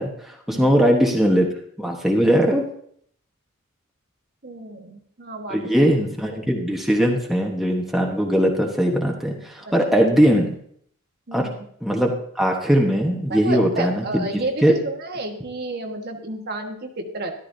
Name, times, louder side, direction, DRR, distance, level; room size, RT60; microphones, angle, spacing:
voice 1, 0.0-1.5 1.8-2.6 5.5-10.5 11.3-11.5 11.8-14.2 14.6-14.7, equal, ahead, 0 dB, 1.1 m, -20 dB
voice 2, 4.4-5.9 9.6-9.8 11.3-11.6 13.3-17.3, right 2 dB, 45° right, 3 dB, 1.3 m, -31 dB
13.5 x 12.0 x 2.7 m, 0.64 s
head